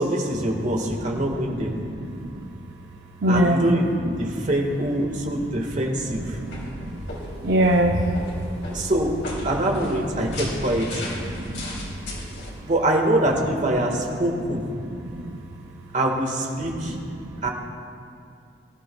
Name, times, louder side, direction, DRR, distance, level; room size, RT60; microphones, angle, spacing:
voice 1, 0.0-1.7 3.3-6.4 8.7-9.2 9.4-11.0 12.6-14.6 15.9-16.9 17.4-17.5, right 1 dB, 45° right, 1 dB, 1.7 m, -24 dB
voice 2, 1.1-2.5 3.2-3.8 4.4-4.5 6.4-7.0 7.4-8.1 11.3-11.6 14.9-15.4 16.6-17.3, right 1 dB, 70° right, 1 dB, 0.8 m, -25 dB
sound 1, 6.1-12.5, left 1 dB, 80° left, 3.0 m, -35 dB
23.0 x 13.0 x 2.3 m, 2.5 s
head